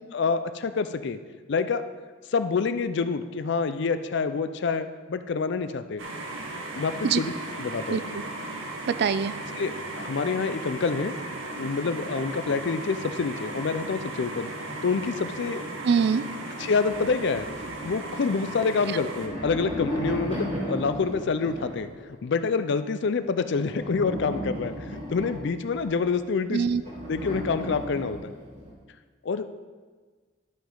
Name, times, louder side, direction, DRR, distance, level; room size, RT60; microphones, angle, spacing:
voice 1, 0.1-1.2 1.5-1.8 2.3-6.0 6.7-7.3 7.6-8.0 9.6-11.1 11.6-15.6 16.6-17.5 17.8-26.7 27.1-28.3 29.2-29.5, left 4 dB, 60° left, 11 dB, 0.4 m, -27 dB
sound 1, 6.0-19.3, right 2 dB, 80° right, 1.1 m, -36 dB
voice 2, 7.9-8.2 8.9-9.3 15.8-16.2 26.5-26.8, right 6 dB, 55° right, 14 dB, 0.3 m, -24 dB
sound 2, 16.8-18.4 18.9-22.0 23.5-26.1 26.8-28.7, equal, 35° right, 2.8 m, -35 dB
12.5 x 5.3 x 3.8 m, 1.4 s
head